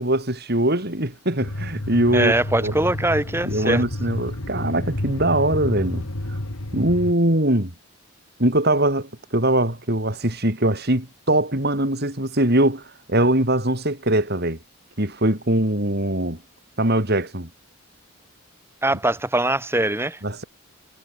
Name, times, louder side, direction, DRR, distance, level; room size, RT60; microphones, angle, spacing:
voice 1, 0.0-2.3 2.6-2.7 3.5-6.1 6.7-7.7 8.4-12.8 13.1-14.6 15.0-16.4 16.8-17.5 20.2-20.4, right 1 dB, 45° right, 4.5 m, -21 dB
sound 1, 1.4-7.1, left 1 dB, 80° left, 2.3 m, -30 dB
voice 2, 2.1-3.8 18.8-20.2, right 1 dB, 10° right, 2.2 m, -22 dB
head